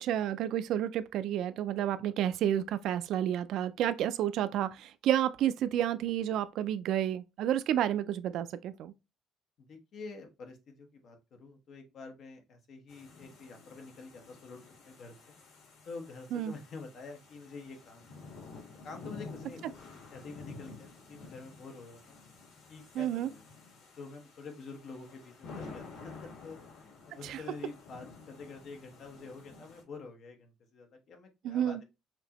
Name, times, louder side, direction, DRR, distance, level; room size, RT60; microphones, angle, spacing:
voice 1, 0.0-8.9 16.3-16.5 22.9-23.3 27.2-27.4 31.4-31.8, right 11 dB, 55° right, 0.3 m, -30 dB
voice 2, 9.7-14.6 14.9-15.4 15.9-18.4 18.8-19.8 20.1-22.2 22.7-23.4 24.0-31.8, left 4 dB, 40° left, 1.1 m, -47 dB
sound 1, 12.9-29.8, left 4 dB, 80° left, 2.4 m, -51 dB
6.0 x 2.8 x 2.9 m
cardioid pair, 180°, 0 cm